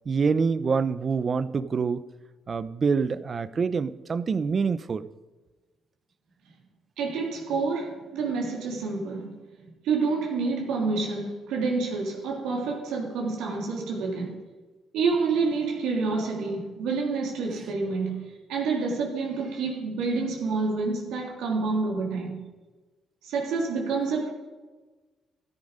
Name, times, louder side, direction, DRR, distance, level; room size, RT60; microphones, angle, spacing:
voice 1, 0.1-2.0 2.5-5.1, right 5 dB, 40° right, 15 dB, 0.7 m, -26 dB
voice 2, 7.0-9.3 9.8-14.4 14.9-18.2 18.5-22.4 23.2-24.3, right 4 dB, 90° right, -1 dB, 3.3 m, -28 dB
14.0 x 9.8 x 5.1 m, 1.2 s
cardioid pair, 90°, 0 cm